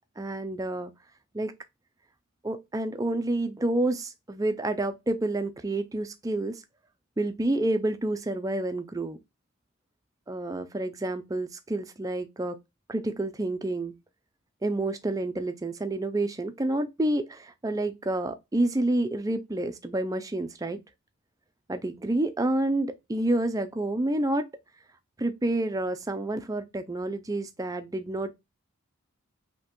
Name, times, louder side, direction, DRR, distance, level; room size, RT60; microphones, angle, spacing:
voice 1, 0.2-0.9 1.3-1.5 2.4-6.6 7.2-9.2 10.3-12.6 12.9-13.9 14.6-20.8 21.7-24.5 25.2-28.3, right 1 dB, 15° right, 0.4 m, -29 dB
5.4 x 2.9 x 2.9 m
head